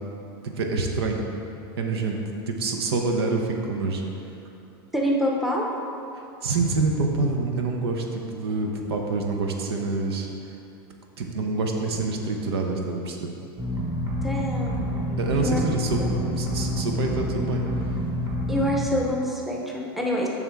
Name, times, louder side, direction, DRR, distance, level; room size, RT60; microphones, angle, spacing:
voice 1, 0.4-1.2 1.8-2.2 2.5-4.0 6.4-10.3 11.2-13.3 15.2-17.6, right 3 dB, 85° right, 2 dB, 0.9 m, -26 dB
voice 2, 4.9-5.7 14.2-14.9 15.3-15.6 18.5-20.3, left 1 dB, ahead, -2 dB, 0.7 m, -26 dB
sound 1, 13.6-18.9, equal, 20° right, 1.1 m, -28 dB
7.2 x 6.0 x 3.5 m, 2.8 s
supercardioid pair, 140°, 13 cm